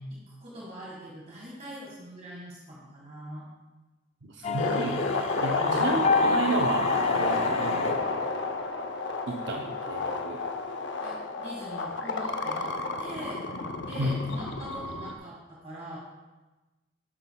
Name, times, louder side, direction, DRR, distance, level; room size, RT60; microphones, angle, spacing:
voice 1, 0.1-3.4 5.6-6.0 11.0-12.7 13.0-13.4 13.9-16.0, equal, 35° right, -5 dB, 1.6 m, -42 dB
voice 2, 4.2-8.0 9.3-10.4 14.0-14.2, right 2 dB, 65° right, 1 dB, 0.6 m, -32 dB
sound 1, 4.4-8.4, left 4 dB, 35° left, 0.4 m, -30 dB
sound 2, 4.6-15.1, left 3 dB, 70° left, 0.6 m, -30 dB
11.5 x 9.6 x 2.3 m, 1.1 s
head